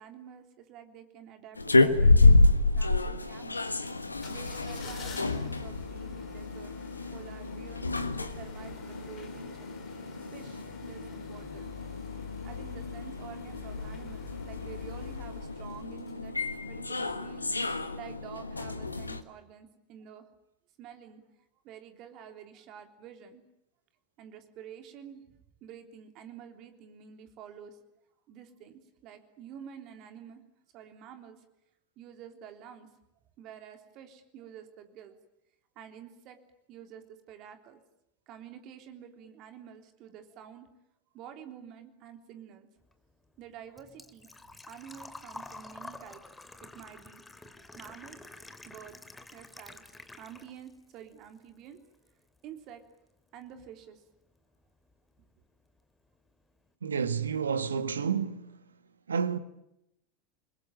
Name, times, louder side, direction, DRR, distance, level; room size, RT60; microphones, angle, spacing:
voice 1, 0.0-3.6 4.3-6.7 7.1-7.9 8.2-9.8 10.3-11.8 12.4-16.4 16.7-17.5 17.9-20.3 20.8-21.2 21.6-23.4 24.2-25.2 25.6-27.8 28.3-30.4 30.7-31.4 32.0-32.9 33.4-35.2 35.8-36.4 36.7-37.8 38.3-40.7 41.1-42.7 43.4-44.3 44.7-46.2 46.6-47.2 47.6-48.2 48.7-49.8 50.2-51.8 52.4-52.8 53.3-54.0, right 9 dB, 45° right, 3.5 m, -49 dB
sound 1, 1.5-19.2, left 2 dB, 85° left, 1.5 m, -28 dB
sound 2, 4.1-16.6 17.0-17.1, left 10 dB, 35° left, 4.4 m, -46 dB
Engine / Trickle dribble / Fill (with liquid), 42.8-50.8 51.1-52.1 52.4-52.5 54.4-54.5 54.6-55.0 55.4-55.5 55.7-55.8, left 2 dB, 10° left, 2.4 m, -48 dB
voice 2, 56.8-58.5 59.1-59.4, right 6 dB, 75° right, 1.5 m, -30 dB
28.5 x 21.5 x 8.9 m
figure-of-eight pair, 80°, 0 cm